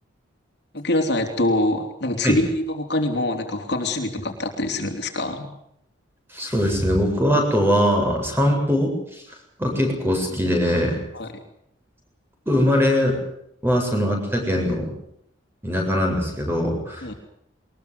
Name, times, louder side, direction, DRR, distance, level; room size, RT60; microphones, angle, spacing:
voice 1, 0.7-5.5 11.1-11.3 17.0-17.1, left 1 dB, 55° left, 3 dB, 3.6 m, -24 dB
voice 2, 6.3-9.2 9.6-11.0 12.5-13.2 13.6-15.0 15.6-17.1, equal, 10° right, 1 dB, 7.7 m, -21 dB
23.0 x 21.0 x 8.2 m, 0.74 s
head